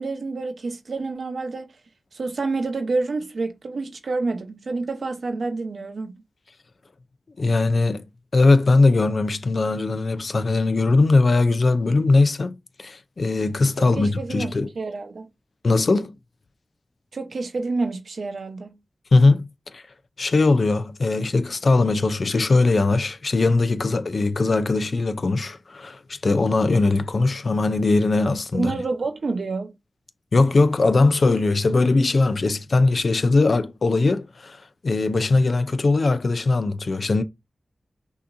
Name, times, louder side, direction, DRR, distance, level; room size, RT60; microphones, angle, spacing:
voice 1, 0.0-1.8 2.1-6.2 13.8-15.3 17.1-18.8 28.5-29.7, right 3 dB, 80° right, 0.8 m, -28 dB
voice 2, 7.4-8.0 8.3-12.5 12.8-14.7 15.6-16.2 19.1-19.8 20.2-28.7 30.3-37.2, left 3 dB, 70° left, 0.5 m, -20 dB
6.0 x 2.8 x 2.6 m
cardioid pair, 50°, 0 cm